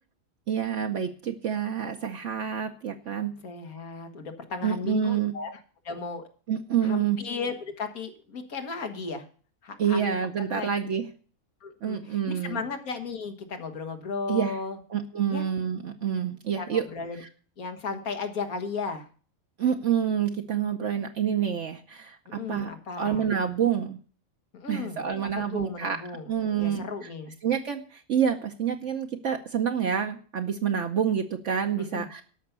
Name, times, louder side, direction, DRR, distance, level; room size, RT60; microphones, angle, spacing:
voice 1, 0.5-3.4 4.6-5.4 6.5-7.2 9.8-11.1 11.8-12.6 14.3-14.5 14.9-16.9 17.2-17.3 19.6-24.0 24.7-26.0 26.3-26.9 27.4-32.2, right 8 dB, 60° right, 4 dB, 1.1 m, -28 dB
voice 2, 3.4-5.6 5.8-6.2 6.8-9.3 9.6-10.7 11.6-14.8 15.3-15.4 16.6-17.2 17.6-19.0 22.3-23.3 24.5-25.0 25.5-27.3 31.8-32.1, left 4 dB, 90° left, 6 dB, 2.0 m, -35 dB
12.5 x 5.9 x 8.1 m, 0.42 s
omnidirectional pair, 1.5 m